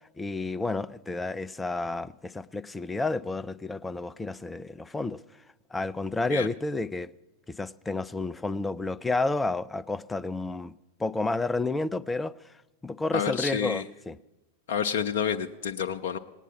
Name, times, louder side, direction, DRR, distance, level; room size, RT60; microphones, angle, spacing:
voice 1, 0.2-5.2 5.7-7.1 7.6-10.7 11.0-12.4 12.8-14.2, left 3 dB, 10° left, 0.4 m, -30 dB
voice 2, 13.1-13.8 14.7-16.2, left 8 dB, 55° left, 0.6 m, -29 dB
18.5 x 9.1 x 7.1 m
figure-of-eight pair, 90°, 0 cm